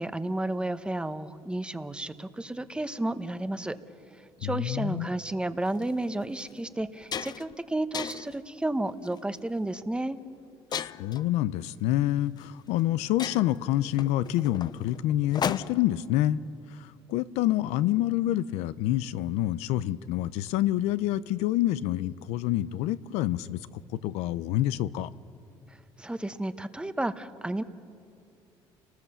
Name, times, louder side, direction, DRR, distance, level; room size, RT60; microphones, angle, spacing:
voice 1, 0.0-3.8 4.4-10.2 26.0-27.6, right 1 dB, 10° right, 11 dB, 1.0 m, -32 dB
voice 2, 4.4-5.1 10.7-16.4 17.1-23.6 24.0-25.1, left 14 dB, 85° left, 15 dB, 0.6 m, -27 dB
sound 1, 5.7-5.8 6.4-6.5 6.8-7.6 7.9-8.4 9.1-9.4 10.7-11.3 12.4-12.5 12.8-12.9 13.2-16.0, left 7 dB, 40° left, 0.6 m, -35 dB
30.0 x 19.5 x 6.9 m, 2.5 s
cardioid pair, 100°, 11 cm